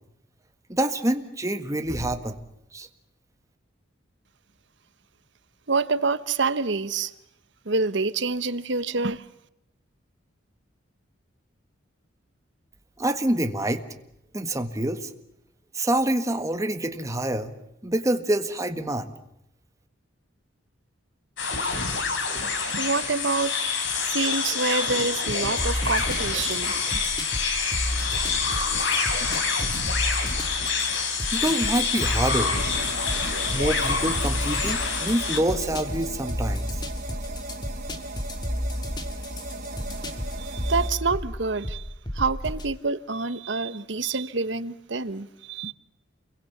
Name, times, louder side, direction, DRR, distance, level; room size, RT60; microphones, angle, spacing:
voice 1, 0.7-2.4 2.7-2.9 13.0-13.8 14.3-15.1 15.7-17.5 17.8-19.1 31.3-32.5 33.5-36.7, right 1 dB, 15° right, 1.7 m, -26 dB
voice 2, 5.7-7.1 7.6-9.2 22.2-23.6 24.0-27.2 39.9-40.0 40.4-41.8 42.1-45.7, right 4 dB, 65° right, 1.1 m, -27 dB
sound 1, 21.4-35.4, left 5 dB, 65° left, 4.4 m, -27 dB
sound 2, 25.6-42.7, equal, 20° left, 2.3 m, -32 dB
sound 3, 32.1-40.9, right 1 dB, 40° right, 4.5 m, -37 dB
29.0 x 22.5 x 7.3 m
head